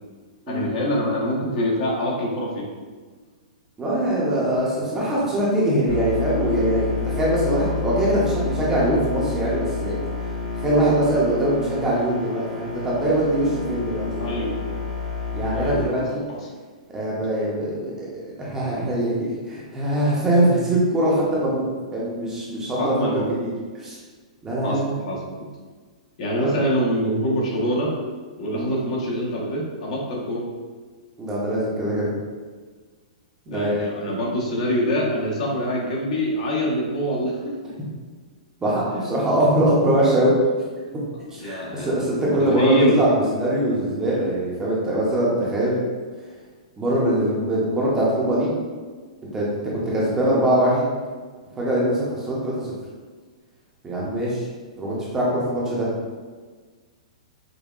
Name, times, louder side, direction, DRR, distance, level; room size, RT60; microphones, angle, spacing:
voice 1, 0.5-2.6 14.2-14.8 15.5-16.0 16.3-16.5 22.8-23.3 24.6-25.5 26.2-27.9 28.4-30.5 33.5-37.6 41.3-43.0, equal, 60° left, -4 dB, 1.1 m, -25 dB
voice 2, 3.8-10.0 10.6-14.4 15.3-16.2 16.9-21.7 21.9-23.5 23.8-24.0 24.4-24.9 26.4-26.5 28.5-28.7 31.2-32.1 33.5-34.2 38.6-40.3 40.9-41.0 41.3-45.8 46.8-48.5 49.3-49.5 49.7-50.9 51.6-52.5 53.8-54.4 54.8-55.9, right 1 dB, 15° right, -6 dB, 0.7 m, -22 dB
sound 1, 5.9-15.9, left 4 dB, 30° left, 1.0 m, -29 dB
5.2 x 2.2 x 2.4 m, 1.4 s
hypercardioid pair, 150°, 4 cm